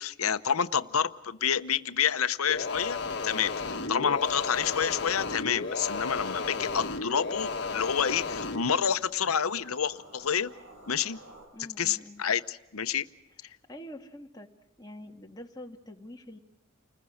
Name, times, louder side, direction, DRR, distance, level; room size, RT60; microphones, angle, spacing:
voice 1, 0.0-3.0 3.2-10.5 10.9-11.2 11.8-13.1, left 7 dB, 85° left, 12 dB, 0.9 m, -28 dB
sound 1, 2.5-8.6, left 4 dB, 55° left, 1.6 m, -33 dB
voice 2, 3.8-4.2 11.5-12.2 13.7-14.5 14.8-16.4, left 1 dB, 20° left, 1 dB, 1.8 m, -45 dB
sound 2, 4.6-11.5, right 1 dB, 70° right, 7.5 m, -52 dB
29.5 x 20.5 x 6.5 m, 0.92 s
head